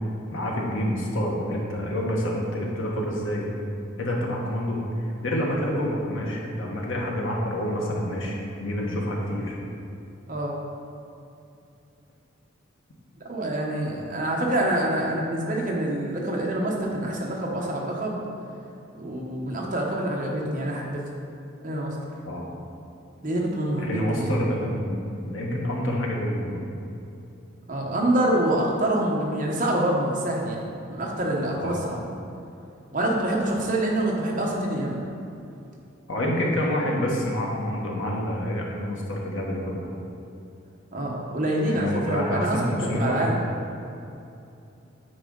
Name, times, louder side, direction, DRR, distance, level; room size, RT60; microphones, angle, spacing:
voice 1, 0.3-3.5 4.0-9.6 13.9-14.0 22.2-22.5 23.8-25.0 25.3-26.6 31.6-31.8 36.1-39.8 41.7-43.3, equal, 70° left, -2 dB, 1.2 m, -28 dB
voice 2, 13.3-18.2 19.0-21.0 21.6-22.0 23.2-24.4 27.7-32.0 32.9-35.0 40.9-43.4, right 1 dB, 40° right, -2 dB, 1.0 m, -26 dB
8.9 x 4.7 x 3.9 m, 2.7 s
head